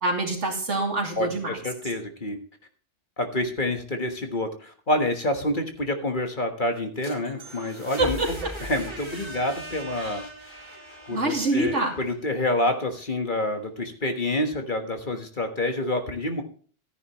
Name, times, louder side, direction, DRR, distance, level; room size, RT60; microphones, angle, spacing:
voice 1, 0.0-1.6 8.0-8.5 10.0-10.1 11.1-11.9, right 2 dB, 70° right, 1 dB, 2.9 m, -26 dB
voice 2, 1.2-2.4 3.2-10.2 11.1-16.4, left 1 dB, 40° left, 5 dB, 1.5 m, -28 dB
sound 1, 6.8-12.6, right 1 dB, 20° right, 4.0 m, -40 dB
13.5 x 9.9 x 3.0 m, 0.43 s
omnidirectional pair, 1.3 m